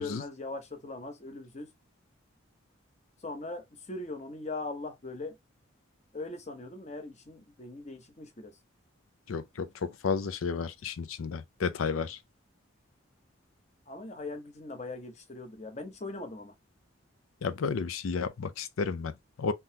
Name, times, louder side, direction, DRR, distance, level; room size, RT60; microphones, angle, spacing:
voice 1, 0.0-1.7 3.2-5.4 6.1-8.6 13.9-16.5, left 2 dB, 35° left, 0.7 m, -40 dB
voice 2, 9.3-12.2 17.4-19.5, left 5 dB, 90° left, 0.5 m, -32 dB
3.7 x 2.8 x 2.7 m
head